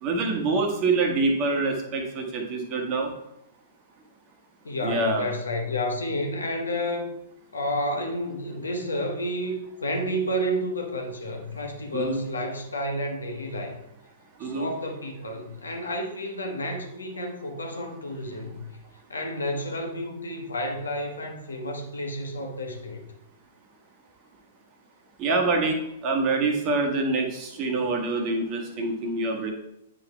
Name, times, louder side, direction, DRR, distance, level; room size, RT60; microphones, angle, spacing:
voice 1, 0.0-3.1 4.8-5.3 11.9-12.2 14.4-14.7 25.2-29.5, right 3 dB, 30° right, 3 dB, 1.3 m, -26 dB
voice 2, 4.6-7.1 7.5-13.8 14.4-18.6 19.1-23.1, equal, 70° left, 2 dB, 1.2 m, -30 dB
9.2 x 4.0 x 3.3 m, 0.82 s
figure-of-eight pair, 105°, 0 cm